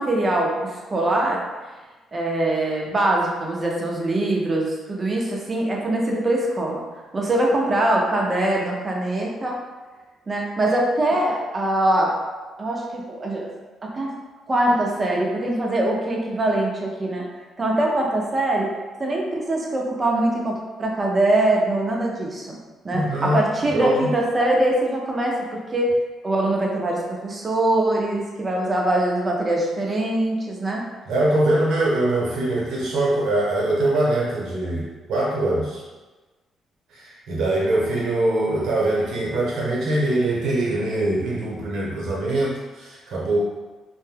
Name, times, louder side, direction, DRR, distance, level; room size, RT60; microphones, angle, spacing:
voice 1, 0.0-1.4 2.1-6.8 7.1-9.6 10.3-12.1 12.6-13.5 13.8-14.1 14.5-17.2 17.6-18.7 19.0-22.6 22.8-25.9 26.2-30.8, right 1 dB, 30° right, -1 dB, 0.6 m, -23 dB
voice 2, 22.9-24.1 31.1-35.8 36.9-43.4, right 1 dB, 75° right, -5 dB, 1.0 m, -23 dB
2.5 x 2.2 x 3.3 m, 1.2 s
cardioid pair, 90°, 0 cm